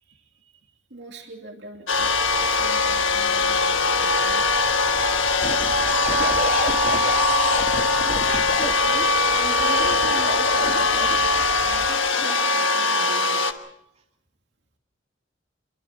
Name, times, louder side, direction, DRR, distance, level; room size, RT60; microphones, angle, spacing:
voice 1, 0.0-4.6 5.4-5.5, right 2 dB, 60° right, 2 dB, 2.8 m, -45 dB
sound 1, 1.9-13.5, left 3 dB, 90° left, 1.3 m, -21 dB
sound 2, 1.9-11.9, equal, 15° right, 3.2 m, -42 dB
sound 3, 5.4-8.7 9.8-11.4 12.1-12.4, left 3 dB, 45° left, 2.3 m, -29 dB
voice 2, 8.0-13.6, right 2 dB, 35° right, 0 dB, 2.9 m, -38 dB
27.0 x 23.5 x 4.4 m, 0.81 s
head